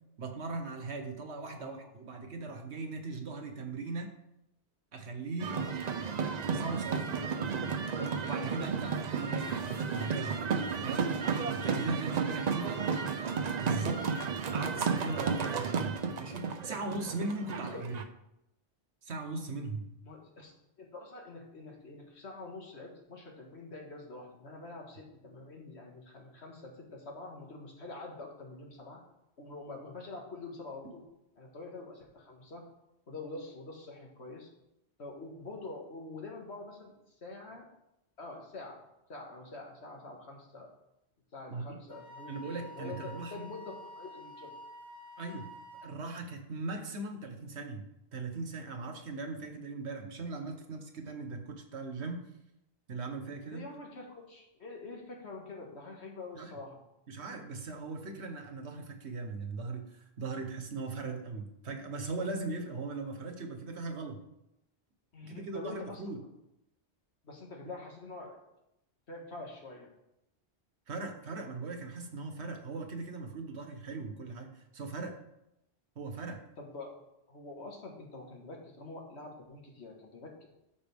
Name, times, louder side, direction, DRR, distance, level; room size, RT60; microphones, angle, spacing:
voice 1, 0.2-4.1 4.9-5.6 5.9-7.3 8.0-10.3 10.8-11.1 11.6-13.2 13.6-14.0 14.5-18.0 19.0-19.8 41.5-41.8 42.3-43.4 45.2-45.5 45.8-47.8 48.1-52.2 52.9-53.7 56.3-56.5 57.1-64.2 65.2-66.2 70.9-75.2 76.0-76.4, right 3 dB, 80° right, 5 dB, 1.4 m, -39 dB
voice 2, 1.4-1.9 17.5-17.8 20.0-20.5 20.8-29.0 29.4-31.1 31.4-32.7 33.1-34.5 35.0-36.9 37.2-37.7 38.2-38.8 39.1-40.7 41.3-44.6 53.5-56.8 65.1-66.0 67.2-68.4 69.1-69.9 76.6-76.9 77.3-80.5, left 3 dB, 85° left, 0 dB, 1.9 m, -46 dB
sound 1, 5.4-18.0, right 5 dB, 50° right, 0.6 m, -33 dB
Wind instrument woodwind instrument, 41.9-45.9, left 1 dB, 5° left, 1.6 m, -49 dB
13.0 x 5.2 x 3.5 m, 0.84 s
omnidirectional pair, 1.1 m